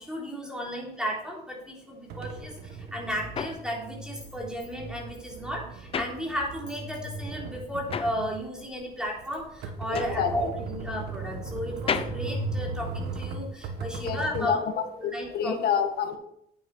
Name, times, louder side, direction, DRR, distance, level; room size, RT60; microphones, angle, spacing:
voice 1, 0.0-14.6 15.0-15.6, equal, 5° right, -2 dB, 3.7 m, -34 dB
sound 1, 2.1-14.5, right 3 dB, 75° right, 1.6 m, -37 dB
sound 2, 2.6-6.9 7.2-13.4, left 6 dB, 35° left, 0.7 m, -36 dB
voice 2, 9.9-10.5 14.0-14.7 15.0-16.2, left 7 dB, 65° left, 6 dB, 1.7 m, -28 dB
8.9 x 8.8 x 4.9 m, 0.72 s
cardioid pair, 110°, 17 cm